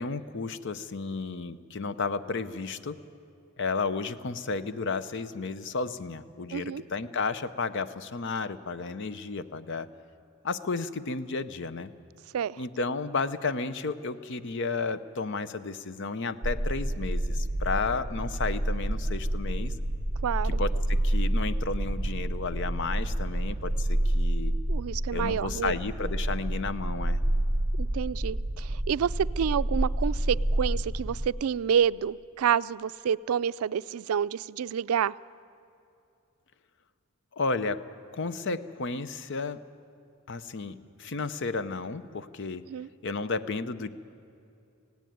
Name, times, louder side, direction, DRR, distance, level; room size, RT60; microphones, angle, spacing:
voice 1, 0.0-3.0 3.6-9.9 10.4-11.9 12.6-19.7 20.4-24.5 25.1-27.2 37.3-39.6 40.3-42.7 43.0-43.9, left 4 dB, 60° left, 14 dB, 0.7 m, -32 dB
voice 2, 6.5-6.8 12.3-12.6 20.2-20.6 24.7-25.7 27.8-35.1 42.7-42.9, right 8 dB, 90° right, 18 dB, 0.4 m, -28 dB
sound 1, 16.4-31.3, right 1 dB, 30° right, 0.7 m, -29 dB
17.5 x 17.0 x 9.3 m, 2.6 s
head